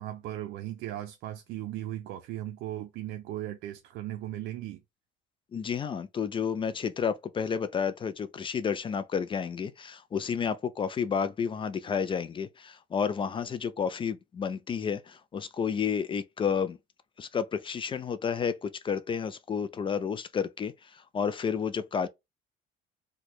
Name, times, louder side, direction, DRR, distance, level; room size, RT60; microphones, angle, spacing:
voice 1, 0.0-4.8, right 13 dB, 85° right, 0.4 m, -37 dB
voice 2, 5.5-16.8 17.2-22.1, left 7 dB, 30° left, 0.3 m, -31 dB
3.0 x 2.2 x 4.0 m
cardioid pair, 110°, 17 cm